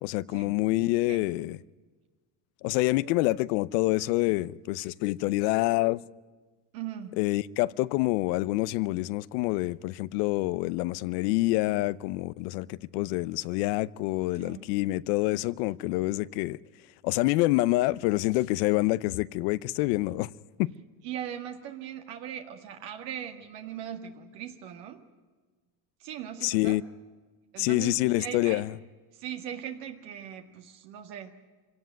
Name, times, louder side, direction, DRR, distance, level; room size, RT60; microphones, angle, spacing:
voice 1, 0.0-1.6 2.6-6.0 7.2-16.6 17.0-20.3 20.6-20.7 26.4-26.8 27.6-28.7, left 19 dB, 85° left, 0.8 m, -27 dB
voice 2, 6.7-7.2 14.4-14.6 21.0-25.0 26.0-26.8 27.5-28.7 29.1-31.3, right 9 dB, 85° right, 1.9 m, -39 dB
25.0 x 17.5 x 9.3 m
supercardioid pair, 95°, 47 cm